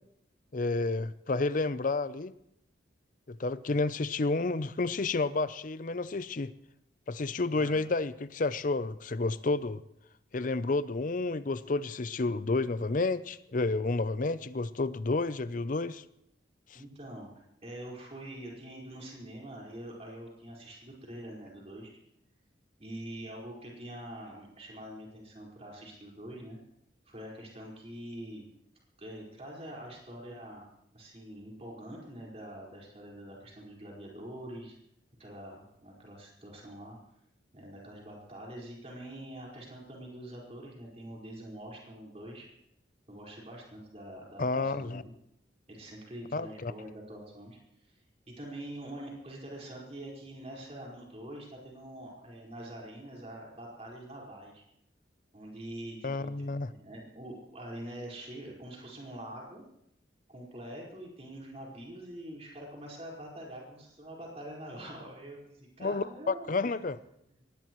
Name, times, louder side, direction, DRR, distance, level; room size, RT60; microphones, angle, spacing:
voice 1, 0.5-2.3 3.3-6.5 7.1-9.8 10.3-16.0 44.4-45.0 46.3-46.7 56.0-56.7 65.8-67.0, left 3 dB, 45° left, 15 dB, 0.6 m, -30 dB
voice 2, 7.5-7.8 16.7-21.9 22.8-26.6 27.0-28.5 29.0-30.6 30.9-34.7 35.2-37.0 37.5-42.5 43.1-45.1 45.7-47.9 48.3-54.6 55.3-59.6 60.3-66.8, right 1 dB, 35° right, -3 dB, 4.8 m, -45 dB
22.5 x 18.5 x 3.1 m, 0.78 s
head